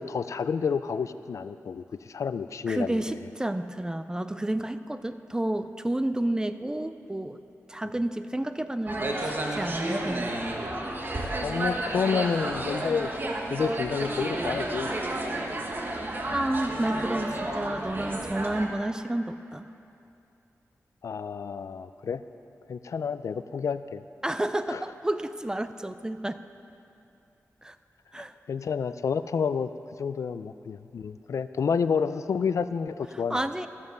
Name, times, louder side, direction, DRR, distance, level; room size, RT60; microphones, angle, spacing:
voice 1, 0.0-3.2 11.4-13.1 13.5-14.9 21.0-22.2 22.7-24.0 24.7-24.8 28.2-29.7 30.0-33.5, left 6 dB, 70° left, 13 dB, 0.4 m, -29 dB
voice 2, 2.7-7.4 7.7-10.4 16.3-19.7 24.2-26.4 27.6-27.8 28.1-28.3 33.3-33.7, right 1 dB, 15° right, 11 dB, 0.4 m, -30 dB
sound 1, 8.9-18.7, right 1 dB, 40° right, 1.1 m, -31 dB
14.0 x 7.3 x 6.5 m, 2.7 s
wide cardioid pair, 95°, 5 cm